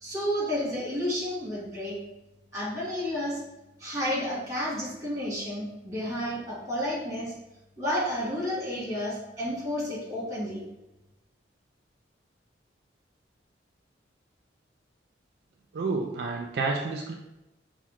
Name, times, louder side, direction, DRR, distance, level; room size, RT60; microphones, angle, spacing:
voice 1, 0.0-2.0 2.5-3.4 3.8-7.3 7.8-10.6, equal, 20° right, -6 dB, 1.4 m, -31 dB
voice 2, 15.7-17.1, right 3 dB, 60° right, 1 dB, 0.3 m, -29 dB
4.7 x 2.0 x 3.1 m, 0.93 s
head